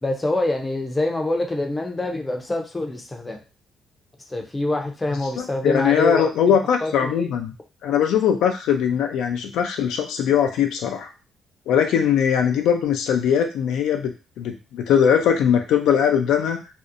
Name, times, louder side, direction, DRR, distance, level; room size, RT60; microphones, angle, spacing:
voice 1, 0.0-3.4 4.3-6.6 6.8-7.3, left 2 dB, 20° left, 2 dB, 0.5 m, -25 dB
voice 2, 5.4-7.5 7.8-11.1 11.7-16.6, left 8 dB, 85° left, 4 dB, 0.4 m, -20 dB
2.7 x 2.0 x 2.5 m, 0.31 s
cardioid pair, 90°, 0 cm